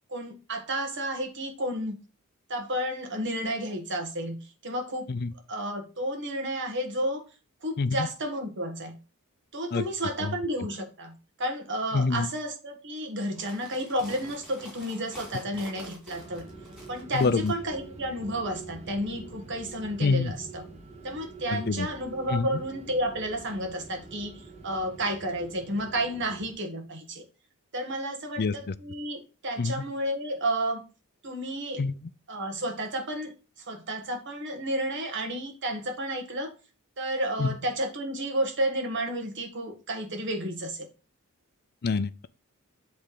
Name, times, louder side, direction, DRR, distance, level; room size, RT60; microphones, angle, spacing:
voice 1, 0.1-2.0 2.5-5.1 5.5-7.2 7.6-9.0 9.5-16.4 16.9-20.6 21.0-27.2 27.7-30.8 31.2-31.9 32.3-33.3 33.6-36.5 37.0-40.9, right 1 dB, 55° right, 1.7 m, -31 dB
voice 2, 7.8-8.1 9.7-9.8 10.2-10.3 11.9-12.3 17.1-17.5 20.0-20.3 21.5-21.9 22.3-22.5 28.4-28.7 29.6-29.8 31.8-31.9 37.4-37.5 41.8-42.3, left 4 dB, 45° left, 0.5 m, -26 dB
sound 1, 13.3-17.5, left 1 dB, 5° right, 2.8 m, -47 dB
sound 2, 16.1-26.5, right 3 dB, 30° right, 1.4 m, -46 dB
7.7 x 3.6 x 4.9 m
head